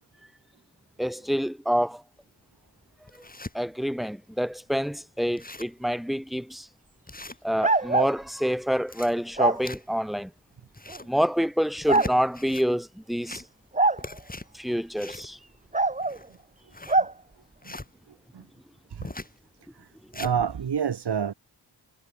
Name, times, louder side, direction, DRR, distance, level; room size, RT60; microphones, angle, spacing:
voice 1, 1.0-2.0 3.1-3.2 3.5-6.7 7.4-10.3 11.1-13.5 14.5-15.4, equal, ahead, 0.4 m, -27 dB
sound 1, 2.2-2.3 2.8-3.5 4.1-4.2 4.5-4.6 4.9-5.0 5.2-5.8 6.3-6.4 7.1-7.9 8.6-10.1 10.6-11.2 11.7-12.7 13.1-13.7 14.0-17.9 19.0-19.4 19.8-20.4, left 2 dB, 20° left, 3.1 m, -40 dB
sound 2, 7.6-8.1 9.4-9.6 10.9-11.0 11.9-12.1 13.8-14.0 15.7-16.2 16.9-17.1, right 3 dB, 15° right, 1.0 m, -23 dB
voice 2, 20.1-21.3, right 7 dB, 60° right, 1.3 m, -28 dB
wide cardioid pair, 95°, 45 cm